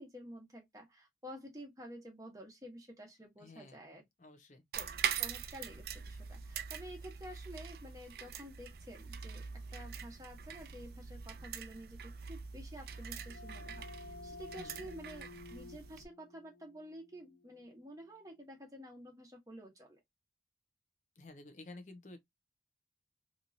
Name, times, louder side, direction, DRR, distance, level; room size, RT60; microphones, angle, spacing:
voice 1, 0.0-4.0 4.8-4.9 5.2-20.0, equal, 20° right, 1.1 m, -51 dB
voice 2, 3.4-3.8 4.2-4.6 14.6-14.9 21.2-22.2, left 2 dB, 40° left, 0.7 m, -52 dB
sound 1, 4.7-16.1, right 7 dB, 55° right, 0.4 m, -43 dB
sound 2, 12.7-18.3, left 3 dB, 85° left, 1.1 m, -53 dB
3.0 x 2.7 x 2.5 m
head